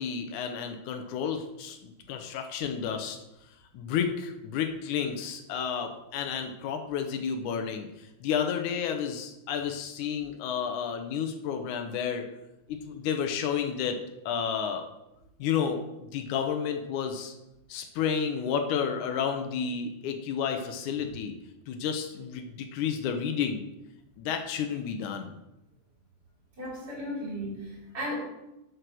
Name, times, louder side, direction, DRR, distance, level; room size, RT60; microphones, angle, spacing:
voice 1, 0.0-3.2 3.7-7.9 8.2-12.2 12.7-13.9 14.2-14.8 15.4-17.3 17.7-21.3 21.7-23.7 24.2-25.3, left 7 dB, 85° left, 5 dB, 1.7 m, -31 dB
voice 2, 26.6-28.2, equal, 25° right, -5 dB, 4.1 m, -35 dB
7.9 x 6.4 x 6.1 m, 0.90 s
omnidirectional pair, 4.7 m